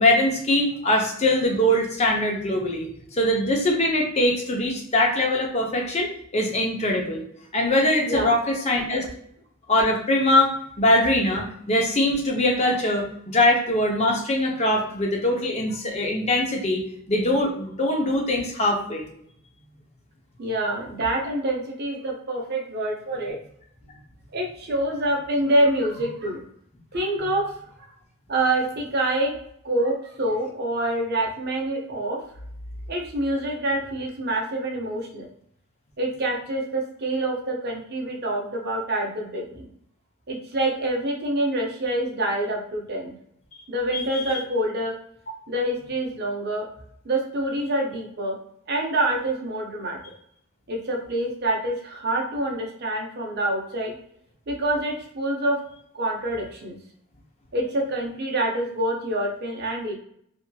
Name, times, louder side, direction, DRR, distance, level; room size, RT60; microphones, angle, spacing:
voice 1, 0.0-2.9 3.2-7.2 7.5-9.0 9.7-10.5 10.8-16.8 17.1-19.0 43.9-44.2, left 1 dB, 30° left, 0 dB, 0.6 m, -22 dB
voice 2, 20.4-23.4 24.3-26.4 26.9-27.5 27.8-27.9 28.3-29.3 29.6-32.2 32.9-35.3 36.0-39.7 40.3-43.1 43.7-44.9 45.5-46.7 47.0-48.4 48.7-50.0 50.7-53.9 54.5-55.6 55.9-56.8 57.5-59.9, right 1 dB, 50° right, 0 dB, 0.6 m, -26 dB
2.7 x 2.6 x 2.2 m, 0.69 s
head